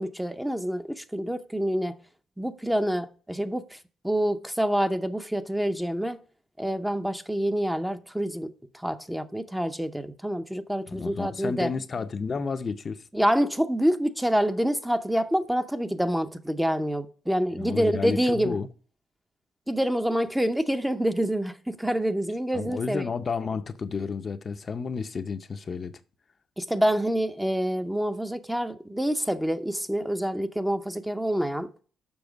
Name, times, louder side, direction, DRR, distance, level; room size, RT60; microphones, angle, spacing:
voice 1, 0.0-1.9 2.4-6.2 6.6-11.7 13.1-18.6 19.7-23.0 26.6-31.7, equal, 5° right, 0.6 m, -27 dB
voice 2, 10.9-13.0 17.6-18.7 22.5-25.9, left 5 dB, 40° left, 0.6 m, -31 dB
7.1 x 5.7 x 5.1 m
cardioid pair, 90°, 0 cm